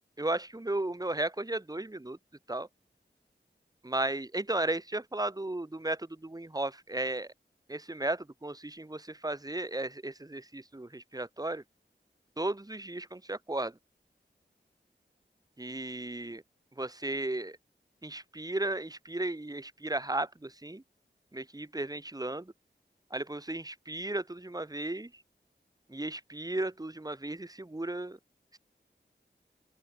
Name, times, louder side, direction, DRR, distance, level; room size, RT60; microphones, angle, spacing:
voice 1, 0.2-2.2 2.5-2.7 3.8-7.3 7.7-11.6 12.4-13.8 15.6-16.4 16.8-17.6 18.0-20.8 21.3-22.5 23.1-25.1 25.9-28.2, right 2 dB, 20° right, 1.1 m, -35 dB
open air
wide cardioid pair, 40°, 19 cm